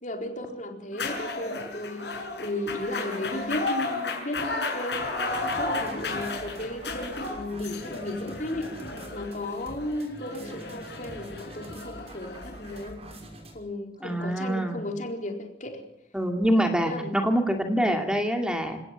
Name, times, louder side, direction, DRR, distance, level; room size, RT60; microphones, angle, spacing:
voice 1, 0.0-8.8 9.1-13.1 13.5-15.8 16.8-17.2, left 1 dB, 45° left, 3 dB, 4.3 m, -35 dB
sound 1, 0.9-12.9, left 3 dB, 70° left, 6.2 m, -34 dB
sound 2, 5.3-13.5, right 1 dB, 35° right, 5.8 m, -46 dB
voice 2, 14.0-14.8 16.1-18.8, equal, 5° right, 4 dB, 2.5 m, -25 dB
29.0 x 18.0 x 7.4 m, 0.75 s
head